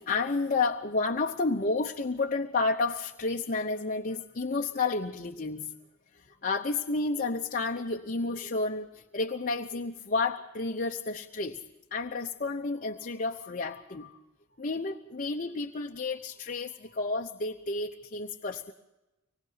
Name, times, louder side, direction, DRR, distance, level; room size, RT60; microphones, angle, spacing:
voice 1, 0.0-5.7 6.1-11.6 11.9-14.2 14.6-18.7, left 3 dB, 40° left, 2 dB, 0.9 m, -31 dB
25.0 x 20.5 x 5.7 m, 1.0 s
head